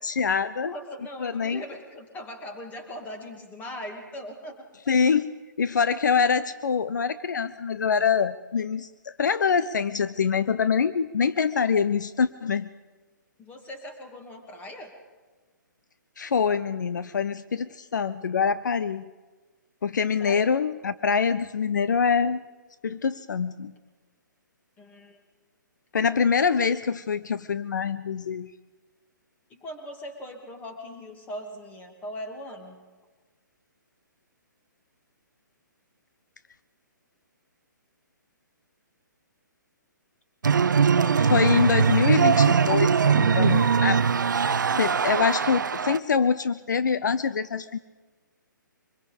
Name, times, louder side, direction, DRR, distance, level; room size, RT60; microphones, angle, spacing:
voice 1, 0.0-0.7 1.2-1.6 4.9-12.7 16.2-19.0 19.8-22.4 22.8-23.7 25.9-28.5 41.3-44.0 44.8-47.8, left 6 dB, 65° left, 14 dB, 0.6 m, -25 dB
voice 2, 0.6-4.7 13.4-14.9 20.2-20.5 24.8-25.2 29.5-32.8 41.0-41.2, equal, 15° left, 4 dB, 2.6 m, -40 dB
sound 1, 40.4-46.0, right 6 dB, 65° right, 0.7 m, -21 dB
24.5 x 21.5 x 5.3 m, 1.3 s
figure-of-eight pair, 130°, 11 cm